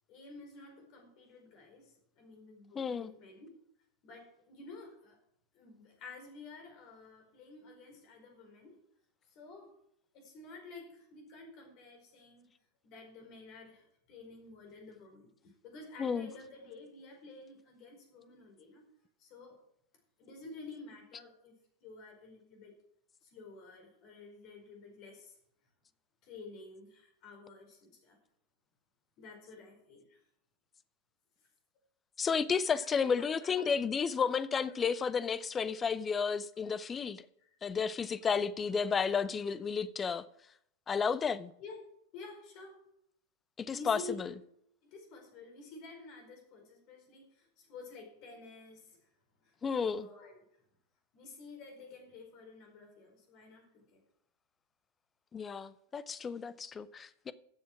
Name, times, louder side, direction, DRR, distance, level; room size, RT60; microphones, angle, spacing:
voice 1, 0.1-3.6 4.0-5.2 5.5-8.8 9.3-9.7 10.1-12.5 12.8-18.9 19.2-19.6 20.2-21.5 21.8-22.7 23.2-25.4 26.2-28.2 29.2-30.2 32.8-33.7 35.7-35.8 36.6-36.7 37.4-37.5 41.6-41.8 42.1-42.8 43.7-44.3 44.8-49.1 49.4-50.4 51.1-54.0, left 3 dB, 40° left, 4.7 m, -51 dB
voice 2, 2.7-3.1 16.0-16.3 32.2-37.2 37.6-40.2 40.9-41.5 43.6-44.0 49.6-50.1 55.3-57.3, left 6 dB, 20° left, 0.7 m, -32 dB
13.5 x 7.3 x 6.2 m
figure-of-eight pair, 90°, 0 cm